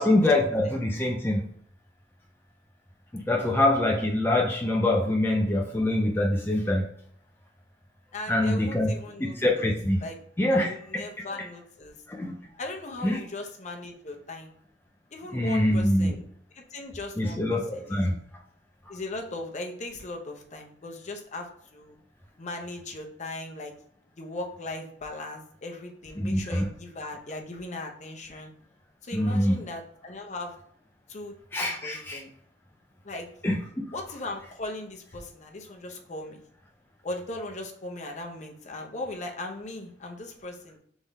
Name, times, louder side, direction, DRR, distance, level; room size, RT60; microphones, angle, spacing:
voice 1, 0.0-1.4 3.1-6.9 8.3-8.9 9.2-10.0 10.4-11.0 12.1-12.4 13.0-13.2 15.3-16.1 17.2-18.1 26.2-26.7 29.1-29.6 31.5-32.2 33.4-33.6, left 1 dB, 10° left, -1 dB, 0.5 m, -24 dB
voice 2, 8.1-9.7 10.0-10.2 10.5-11.9 12.6-14.5 15.1-16.2 16.5-18.0 18.9-22.0 22.4-23.7 24.2-28.5 29.0-30.6 31.1-32.3 33.0-33.3 33.9-36.4 37.0-40.8, left 2 dB, 40° left, 2 dB, 0.8 m, -38 dB
3.6 x 3.6 x 4.1 m, 0.64 s
head